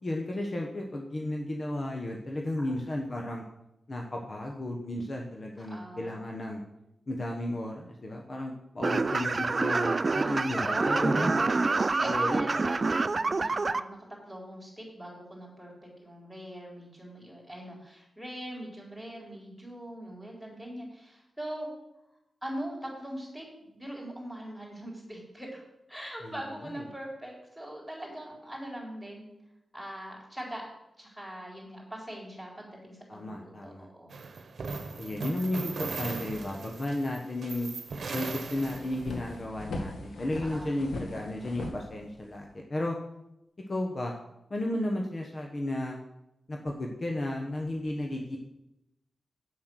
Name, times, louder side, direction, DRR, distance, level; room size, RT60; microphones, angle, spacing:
voice 1, 0.0-3.4 3.9-6.6 7.1-11.3 12.0-12.5 26.2-26.3 26.6-26.8 33.1-33.9 35.0-37.7 38.1-43.0 43.7-44.1 44.5-46.0 46.5-48.4, left 1 dB, 40° left, 0 dB, 1.3 m, -33 dB
voice 2, 5.6-6.2 10.2-11.6 11.8-14.0 14.2-21.7 22.4-25.6 25.9-29.3 29.7-30.6 31.0-34.2 40.4-40.7, right 1 dB, ahead, -1 dB, 4.1 m, -41 dB
sound 1, 8.8-13.8, right 3 dB, 40° right, 0.4 m, -27 dB
sound 2, 34.1-39.3, right 4 dB, 70° right, 1.0 m, -38 dB
sound 3, 37.9-38.0 38.3-42.5, left 2 dB, 90° left, 1.6 m, -40 dB
8.6 x 7.9 x 6.4 m, 0.88 s
wide cardioid pair, 90°, 0 cm